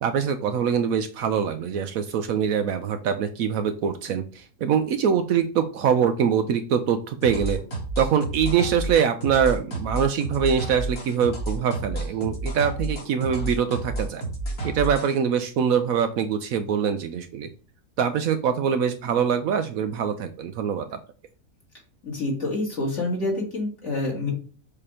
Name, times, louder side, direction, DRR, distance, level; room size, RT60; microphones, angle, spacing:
voice 1, 0.0-7.6 8.0-14.2 14.6-17.5 18.0-21.0, right 7 dB, 70° right, 9 dB, 0.9 m, -24 dB
sound 1, 7.2-15.1, right 2 dB, 65° left, 2.5 m, -30 dB
voice 2, 22.0-24.3, left 2 dB, 45° left, -3 dB, 2.6 m, -27 dB
6.7 x 2.9 x 4.9 m, 0.39 s
omnidirectional pair, 1.7 m